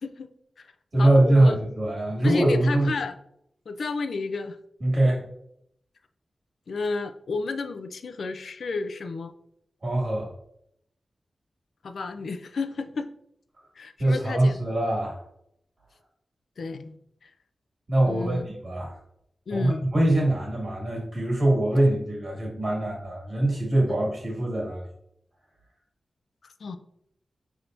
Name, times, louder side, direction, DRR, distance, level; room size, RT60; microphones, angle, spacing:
voice 1, 0.0-0.7 1.0-1.6 2.2-3.2 3.7-4.6 5.0-5.2 6.7-9.3 11.8-13.1 13.8-14.6 16.6-16.9 17.2-17.3 18.1-18.5 19.5-19.8 26.4-26.8, left 4 dB, 75° left, 9 dB, 0.4 m, -32 dB
voice 2, 0.9-2.9 4.8-5.2 9.8-10.3 14.0-15.2 17.9-19.0 19.5-24.9, right 1 dB, 45° right, -2 dB, 1.8 m, -23 dB
5.8 x 3.4 x 2.6 m, 0.73 s
wide cardioid pair, 165°, 0 cm